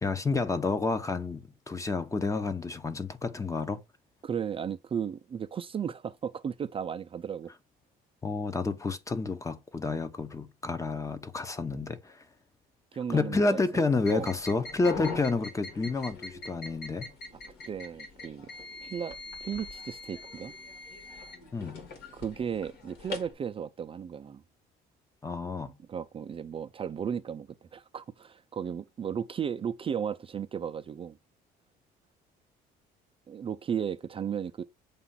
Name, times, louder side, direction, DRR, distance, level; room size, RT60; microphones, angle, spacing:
voice 1, 0.0-3.8 8.2-12.2 13.1-17.1 21.5-21.7 25.2-25.7, left 3 dB, 20° left, 0.8 m, -30 dB
voice 2, 4.2-7.5 12.9-13.8 14.1-14.3 17.7-18.5 18.8-20.5 22.1-24.4 25.9-31.2 33.3-34.6, right 7 dB, 35° right, 0.5 m, -35 dB
sound 1, 14.0-23.3, left 4 dB, 70° left, 2.3 m, -42 dB
6.8 x 2.5 x 5.6 m
cardioid pair, 110°, 17 cm